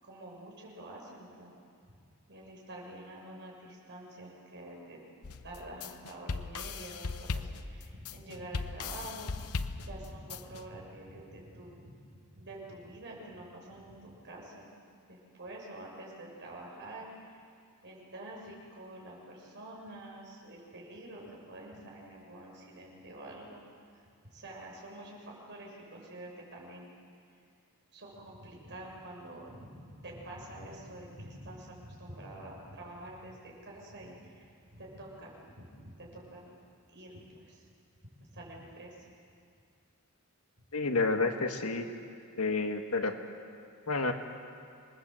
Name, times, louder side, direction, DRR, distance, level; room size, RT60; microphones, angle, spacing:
voice 1, 0.0-1.5 2.3-5.0 5.4-12.0 12.4-14.7 15.1-17.4 17.8-23.6 24.3-26.9 27.9-36.5 36.9-37.7 38.3-39.0, right 1 dB, 55° right, -2 dB, 6.9 m, -47 dB
sound 1, 5.2-10.6, left 4 dB, 90° left, 0.9 m, -38 dB
voice 2, 40.7-41.9 42.4-43.1 43.9-44.1, left 3 dB, 75° left, 5 dB, 1.8 m, -29 dB
27.5 x 21.0 x 7.8 m, 2.3 s
head